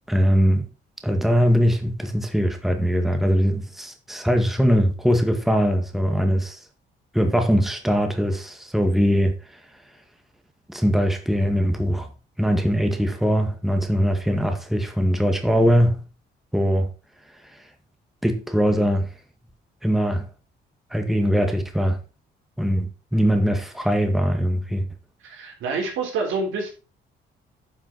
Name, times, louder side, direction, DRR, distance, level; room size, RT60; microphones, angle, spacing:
voice 1, 0.1-0.6 1.0-6.6 7.1-9.3 10.7-12.1 12.4-16.0 16.5-16.9 18.2-19.1 19.8-20.3 20.9-22.0 22.6-24.8, equal, ahead, 1.7 m, -21 dB
voice 2, 25.2-26.7, right 4 dB, 85° right, 3.7 m, -27 dB
10.0 x 5.7 x 4.5 m
cardioid pair, 90°, 20 cm